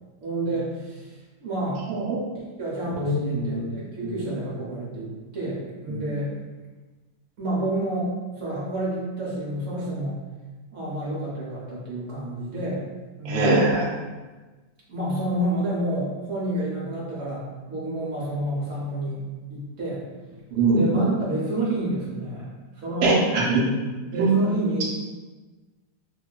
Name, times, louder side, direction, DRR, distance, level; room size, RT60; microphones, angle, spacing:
voice 1, 0.2-1.8 2.6-6.3 7.4-10.2 10.7-12.9 13.2-13.6 14.9-19.2 19.5-20.0 20.3-20.4 20.7-23.3 24.1-24.8, right 1 dB, 65° right, -6 dB, 0.7 m, -29 dB
voice 2, 1.9-2.2 2.9-3.7 5.9-6.0 13.2-13.8 20.5-21.2 23.0-23.6 24.1-24.3, right 3 dB, 85° right, -4 dB, 1.4 m, -22 dB
3.1 x 2.3 x 2.2 m, 1.2 s
omnidirectional pair, 2.1 m